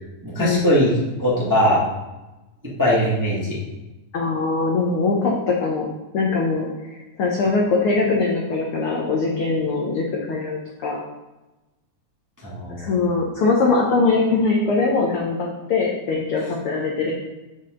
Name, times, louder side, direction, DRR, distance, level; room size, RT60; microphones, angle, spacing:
voice 1, 0.2-0.9 1.2-1.8 2.8-3.6 12.4-12.9, equal, 10° right, -6 dB, 0.9 m, -20 dB
voice 2, 4.1-5.9 6.1-11.0 12.8-17.1, left 3 dB, 75° left, -2 dB, 1.2 m, -22 dB
7.6 x 6.0 x 3.7 m, 1.1 s
omnidirectional pair, 3.7 m